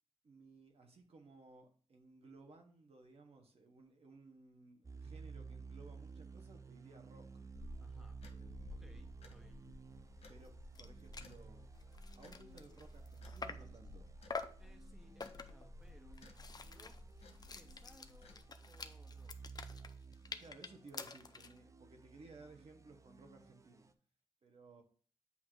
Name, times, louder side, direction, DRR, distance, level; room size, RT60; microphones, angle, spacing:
voice 1, 0.2-7.2 8.3-9.0 10.3-11.7 12.2-14.1 20.4-23.9 24.4-24.8, right 3 dB, 70° right, 3 dB, 1.2 m, -59 dB
sound 1, 4.8-23.9, right 5 dB, 30° right, 0.5 m, -54 dB
sound 2, 7.5-18.4, left 2 dB, 90° left, 1.0 m, -56 dB
voice 2, 7.8-8.2 8.7-9.7 14.6-16.2 16.7-17.0 17.5-18.4 18.7-19.4, equal, 5° right, 4 dB, 0.9 m, -64 dB
sound 3, 10.5-10.6 10.7-10.9 11.1-11.4 11.8-13.8 14.3-14.7 15.2-15.7 16.1-21.6, left 4 dB, 40° left, 0.5 m, -48 dB
8.5 x 2.9 x 4.5 m, 0.42 s
wide cardioid pair, 110°, 10 cm